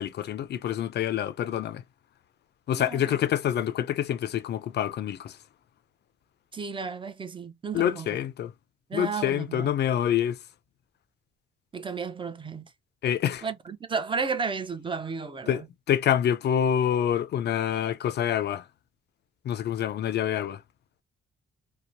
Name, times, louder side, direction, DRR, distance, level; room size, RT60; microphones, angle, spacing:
voice 1, 0.0-1.8 2.7-5.4 7.7-8.5 8.9-10.4 13.0-13.4 15.5-18.6 19.4-20.6, left 10 dB, 55° left, 0.5 m, -27 dB
voice 2, 2.8-3.2 6.5-8.2 8.9-9.7 11.7-12.7 13.4-15.7, right 5 dB, 25° right, 0.6 m, -33 dB
2.8 x 2.1 x 2.5 m
cardioid pair, 90°, 20 cm